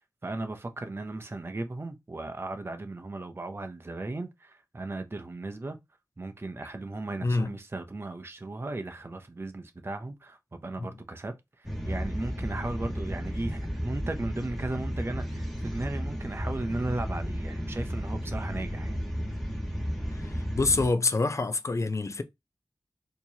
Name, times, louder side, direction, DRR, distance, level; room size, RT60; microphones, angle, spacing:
voice 1, 0.2-5.8 6.2-19.0, right 2 dB, 35° right, 0.6 m, -36 dB
voice 2, 7.2-7.5 10.8-10.9 20.1-22.2, left 3 dB, 45° left, 0.5 m, -27 dB
sound 1, 11.6-20.9, equal, ahead, 1.3 m, -33 dB
4.4 x 2.8 x 2.8 m
wide cardioid pair, 80°, 7 cm